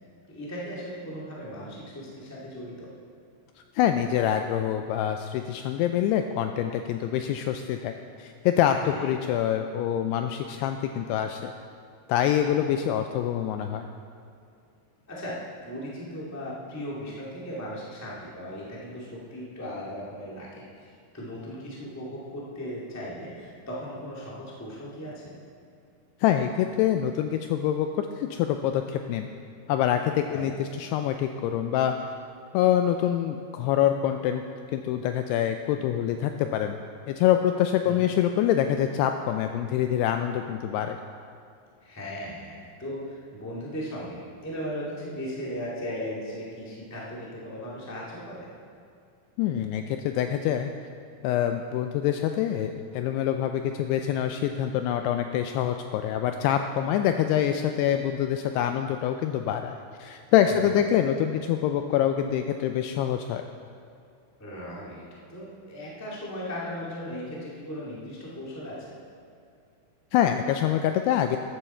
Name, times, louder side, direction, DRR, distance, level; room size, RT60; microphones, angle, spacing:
voice 1, 0.3-2.9 8.9-9.1 15.1-20.9 21.1-25.4 30.3-30.4 37.8-38.1 41.8-48.5 60.5-60.8 64.4-65.0 65.3-68.8, equal, 15° left, -6 dB, 0.6 m, -37 dB
voice 2, 3.8-7.9 8.2-11.5 12.1-13.9 26.2-29.3 29.7-32.1 32.5-34.4 34.7-36.8 37.1-41.0 49.4-50.7 51.2-63.4 70.1-71.4, left 10 dB, 85° left, 6 dB, 2.4 m, -25 dB
13.5 x 11.5 x 4.4 m, 2.4 s
omnidirectional pair, 5.1 m